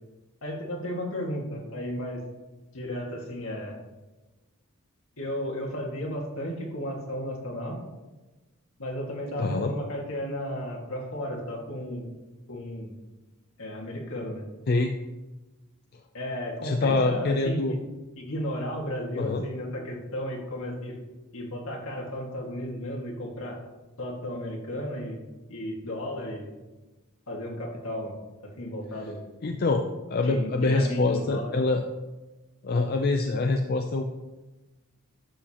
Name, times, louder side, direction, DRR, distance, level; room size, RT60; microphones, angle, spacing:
voice 1, 0.4-2.2 2.7-3.8 5.2-7.8 8.8-12.0 12.5-12.9 13.6-14.5 16.1-17.8 18.2-21.0 21.3-23.6 24.0-25.2 25.5-26.5 27.3-28.2 28.6-29.2 30.2-31.5, equal, 70° left, -1 dB, 1.9 m, -34 dB
voice 2, 9.4-9.7 14.7-14.9 16.6-17.8 19.2-19.4 29.4-31.8 32.6-34.1, left 3 dB, 45° left, 5 dB, 0.5 m, -25 dB
11.0 x 6.9 x 2.9 m, 1.1 s
head